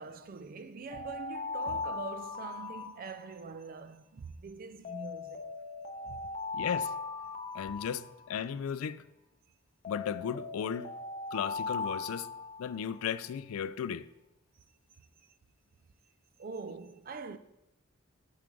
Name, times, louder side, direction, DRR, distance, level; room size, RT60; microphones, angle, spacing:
voice 1, 0.0-5.4 6.0-6.2 16.4-17.4, right 4 dB, 45° right, 0.4 m, -43 dB
Alarm, 0.9-3.5 4.8-8.5 9.8-13.1, left 4 dB, 30° left, 0.6 m, -39 dB
voice 2, 6.5-6.9 7.5-9.0 9.9-10.9 11.3-12.3 12.6-14.1, left 7 dB, 85° left, 0.3 m, -35 dB
6.7 x 4.8 x 5.2 m
head